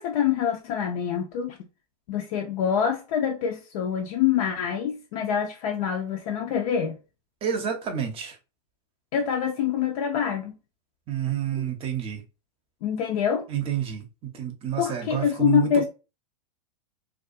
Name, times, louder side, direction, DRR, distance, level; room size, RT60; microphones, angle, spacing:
voice 1, 0.0-1.6 2.1-6.9 9.1-10.6 12.8-13.5 14.8-15.9, left 8 dB, 55° left, 0.5 m, -25 dB
voice 2, 7.4-8.4 11.1-12.2 13.5-15.9, right 9 dB, 25° right, 0.7 m, -29 dB
2.3 x 2.3 x 2.5 m
hypercardioid pair, 110°, 21 cm